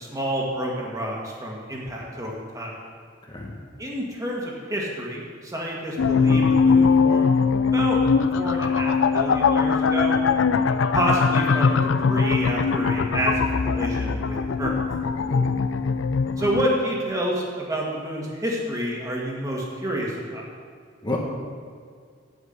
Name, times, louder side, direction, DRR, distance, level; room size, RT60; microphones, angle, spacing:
voice 1, 0.0-2.7 3.8-8.0 8.3-10.2 10.9-14.7 16.4-20.5, right 1 dB, 20° right, -3 dB, 2.1 m, -29 dB
voice 2, 3.3-3.5 10.5-10.7 15.3-15.4 21.0-21.2, left 2 dB, 25° left, -1 dB, 1.2 m, -30 dB
sound 1, 6.0-16.8, left 5 dB, 80° left, 0.5 m, -21 dB
8.0 x 7.9 x 8.1 m, 2.1 s
head